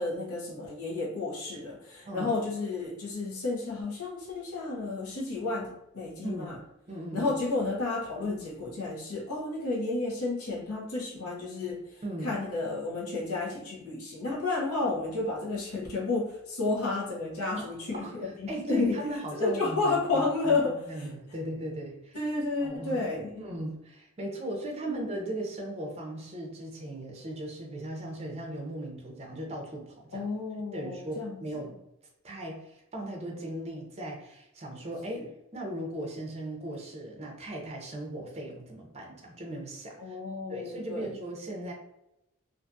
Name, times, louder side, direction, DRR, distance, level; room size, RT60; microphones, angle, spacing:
voice 1, 0.0-6.6 7.1-11.8 12.2-19.0 19.4-21.1 22.1-23.3 24.9-25.0 30.1-31.4 35.1-35.2 40.0-41.1, left 3 dB, 80° left, -3 dB, 0.8 m, -31 dB
voice 2, 6.2-6.6 6.9-7.3 12.0-12.4 14.9-15.1 17.5-18.1 18.5-22.3 22.6-23.0 23.4-30.3 30.7-31.7 32.2-35.3 35.5-40.2 40.5-41.7, right 1 dB, 30° right, 0 dB, 0.5 m, -38 dB
2.5 x 2.3 x 2.6 m, 0.85 s
head